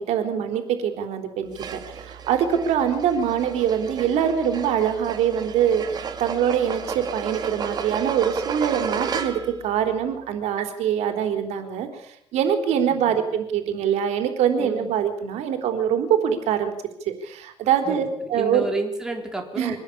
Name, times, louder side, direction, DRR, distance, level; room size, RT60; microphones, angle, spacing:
voice 1, 0.0-16.7 17.1-18.7 19.6-19.8, right 8 dB, 80° right, 7 dB, 4.0 m, -24 dB
sound 1, 1.5-9.6, right 6 dB, 40° right, 2.5 m, -33 dB
voice 2, 14.6-14.9 17.8-19.8, right 2 dB, 5° right, 2 dB, 4.0 m, -31 dB
24.5 x 18.0 x 8.8 m, 0.78 s
cardioid pair, 165°, 11 cm